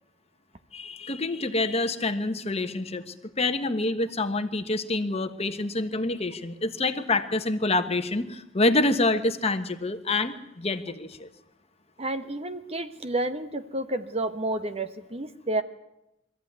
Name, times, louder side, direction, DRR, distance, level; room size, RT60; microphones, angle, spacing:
voice 1, 0.7-11.3, left 2 dB, 30° left, 9 dB, 1.2 m, -27 dB
voice 2, 12.0-15.6, right 2 dB, 30° right, 10 dB, 1.0 m, -30 dB
23.0 x 14.5 x 9.4 m, 0.92 s
head